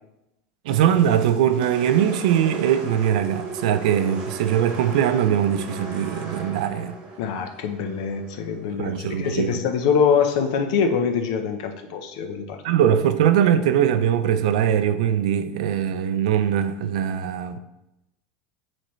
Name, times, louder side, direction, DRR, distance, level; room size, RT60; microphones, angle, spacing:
sound 1, 0.7-8.9, right 3 dB, 30° right, 1.2 m, -37 dB
voice 1, 0.7-6.9 8.7-9.6 12.6-17.6, right 9 dB, 70° right, 0.5 m, -21 dB
voice 2, 7.2-12.6, left 6 dB, 55° left, 0.8 m, -24 dB
8.9 x 4.3 x 3.1 m
supercardioid pair, 180°, 4 cm